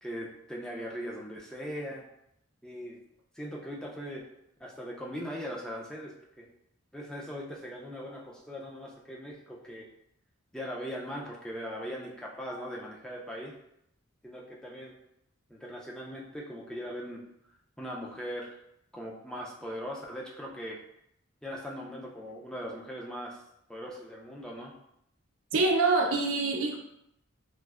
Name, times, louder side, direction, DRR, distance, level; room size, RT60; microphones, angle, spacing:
voice 1, 0.0-2.1 2.6-3.0 3.3-4.3 4.6-6.5 6.9-9.9 10.5-13.5 14.2-15.0 15.5-17.2 17.8-18.6 18.9-20.8 21.4-23.4 23.7-24.7, equal, 5° left, -3 dB, 0.4 m, -40 dB
voice 2, 25.5-26.8, right 3 dB, 90° right, 1 dB, 0.5 m, -25 dB
3.2 x 2.6 x 2.4 m, 0.77 s
head